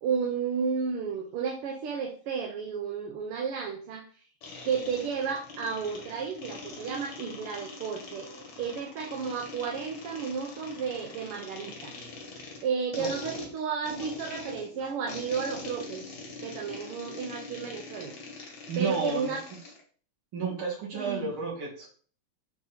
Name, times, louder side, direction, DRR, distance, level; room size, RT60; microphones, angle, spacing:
voice 1, 0.0-4.1 4.6-8.3 8.6-11.9 12.6-16.0 16.4-19.4 20.9-21.3, right 6 dB, 85° right, 2 dB, 1.8 m, -32 dB
sound 1, 4.4-19.8, left 3 dB, 55° left, 1.9 m, -43 dB
voice 2, 14.2-14.9 18.7-19.4 20.3-21.9, right 4 dB, 65° right, -4 dB, 3.2 m, -33 dB
7.0 x 3.7 x 4.3 m, 0.43 s
omnidirectional pair, 2.4 m